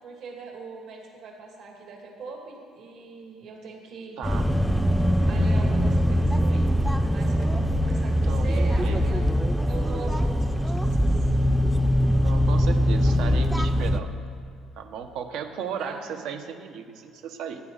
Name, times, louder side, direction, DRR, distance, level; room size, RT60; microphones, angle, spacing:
voice 1, 0.0-4.2 5.3-9.2 9.6-11.2 15.8-16.3, right 4 dB, 60° right, 0 dB, 2.3 m, -41 dB
sound 1, 4.2-14.0, equal, ahead, 0.5 m, -22 dB
voice 2, 4.2-4.5 8.2-9.0 12.2-14.2 14.8-17.6, right 7 dB, 75° right, 7 dB, 1.0 m, -35 dB
16.0 x 10.5 x 4.0 m, 2.3 s
cardioid pair, 155°, 0 cm